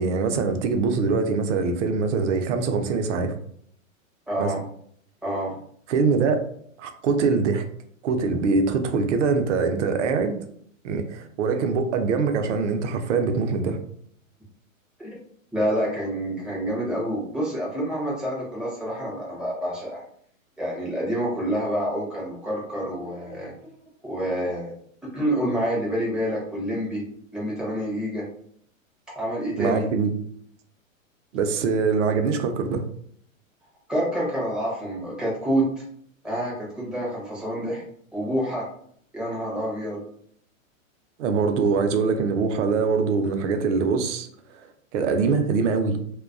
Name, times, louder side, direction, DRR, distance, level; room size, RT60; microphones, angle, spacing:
voice 1, 0.0-3.3 4.4-4.5 5.9-6.4 6.8-7.6 8.0-10.3 10.8-13.8 29.6-30.1 31.3-32.8 41.2-44.3 44.5-44.7 44.9-46.0, right 4 dB, 60° right, 6 dB, 0.6 m, -23 dB
voice 2, 4.3-4.6 5.2-5.6 15.0-15.1 15.5-20.0 20.6-23.5 24.0-24.7 25.0-27.0 27.3-28.3 29.1-29.8 33.9-35.7 36.2-37.8 38.1-38.7 39.1-40.0, equal, ahead, -6 dB, 0.4 m, -27 dB
2.2 x 2.2 x 2.4 m, 0.64 s
hypercardioid pair, 125°, 41 cm